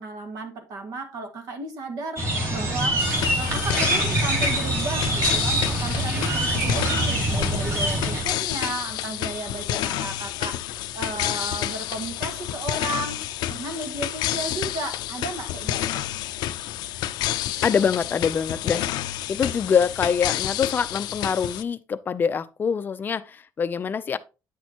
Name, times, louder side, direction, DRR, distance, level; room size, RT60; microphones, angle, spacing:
voice 1, 0.0-3.1 3.4-16.0, right 2 dB, 65° right, 1.8 m, -34 dB
sound 1, 2.2-8.2, right 1 dB, 40° right, 3.0 m, -24 dB
sound 2, 3.0-21.6, left 14 dB, 85° left, 0.5 m, -29 dB
voice 2, 17.6-24.2, left 6 dB, 30° left, 0.5 m, -25 dB
9.2 x 6.3 x 2.9 m
cardioid pair, 160°, 7 cm